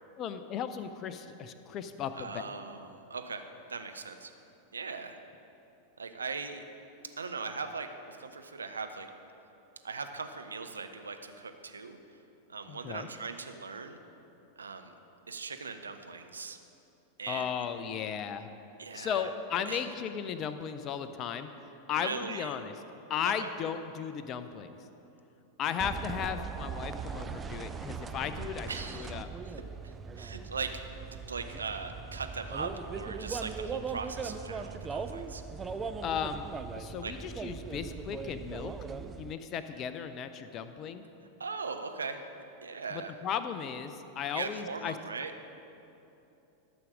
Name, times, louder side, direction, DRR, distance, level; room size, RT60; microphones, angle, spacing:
voice 1, 0.2-2.4 12.7-13.1 17.3-18.5 18.9-21.5 21.9-22.7 23.1-24.8 25.6-29.3 36.0-36.5 36.8-38.7 39.2-41.0 42.9-44.9, left 8 dB, 35° left, 10 dB, 0.5 m, -35 dB
voice 2, 2.1-4.3 4.7-5.2 6.0-6.6 7.2-9.1 9.8-12.0 12.5-14.0 14.6-14.9 15.3-16.6 17.2-17.5 18.8-19.3 19.7-19.8 21.9-22.5 23.4-23.5 28.7-29.1 29.4-35.4 37.0-37.1 41.4-42.3 42.6-43.2 44.3-45.3, right 4 dB, 75° right, 7 dB, 0.7 m, -39 dB
sound 1, 25.8-39.3, right 5 dB, 20° right, 0.4 m, -39 dB
12.5 x 6.2 x 5.1 m, 2.9 s
figure-of-eight pair, 90°, 0 cm